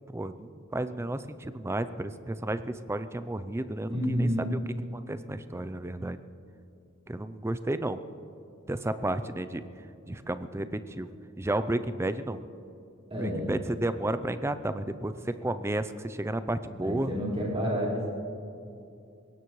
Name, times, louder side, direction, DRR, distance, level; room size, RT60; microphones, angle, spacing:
voice 1, 0.1-4.6 4.9-6.2 7.1-8.0 8.7-9.6 10.1-11.1 11.4-12.4 13.2-17.1, right 1 dB, 15° right, 12 dB, 0.5 m, -32 dB
voice 2, 3.9-4.5 13.1-13.5 16.8-18.1, equal, 30° right, -7 dB, 4.7 m, -29 dB
22.0 x 18.0 x 3.2 m, 2.6 s
head